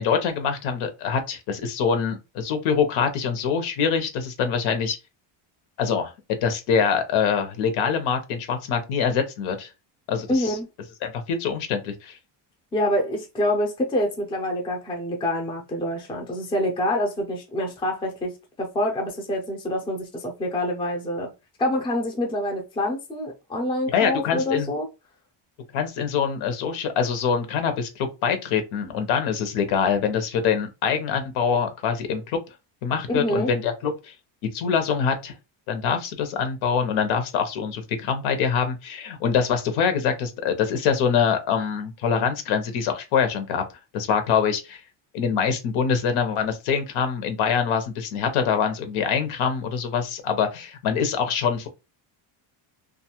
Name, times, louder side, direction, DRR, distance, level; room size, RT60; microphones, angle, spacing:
voice 1, 0.0-5.0 5.8-6.1 6.4-9.7 10.1-10.6 11.0-12.2 23.9-24.7 25.7-32.4 32.8-34.1 34.5-35.3 35.7-43.6 43.9-44.8 45.1-51.7, left 6 dB, 75° left, 0.8 m, -24 dB
voice 2, 10.3-10.7 12.7-18.3 18.6-21.3 21.6-24.9 33.1-33.5, left 1 dB, 10° left, 0.4 m, -26 dB
2.6 x 2.3 x 2.8 m
cardioid pair, 165°, 49 cm